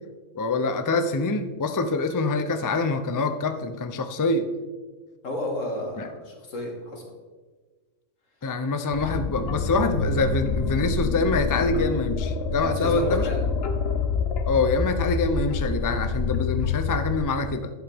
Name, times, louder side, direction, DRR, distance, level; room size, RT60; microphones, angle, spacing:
voice 1, 0.4-4.5 6.0-6.1 8.4-13.2 14.5-17.7, left 3 dB, 30° left, 8 dB, 0.3 m, -25 dB
voice 2, 5.2-7.0 12.6-13.4, left 1 dB, 85° left, 1 dB, 2.2 m, -32 dB
sound 1, 8.9-17.2, left 4 dB, 60° left, 1.0 m, -27 dB
11.0 x 8.5 x 3.5 m, 1.4 s
omnidirectional pair, 1.3 m